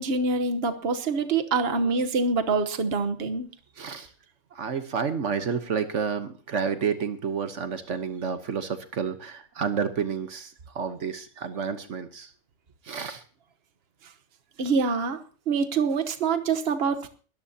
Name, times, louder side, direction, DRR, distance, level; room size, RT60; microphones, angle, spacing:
voice 1, 0.0-3.5 14.6-15.2 15.5-17.1, right 4 dB, 50° right, 8 dB, 1.3 m, -25 dB
voice 2, 3.8-4.1 4.5-12.3 12.8-13.2, right 6 dB, 70° right, 9 dB, 1.4 m, -30 dB
21.0 x 14.0 x 2.8 m, 0.39 s
omnidirectional pair, 1.3 m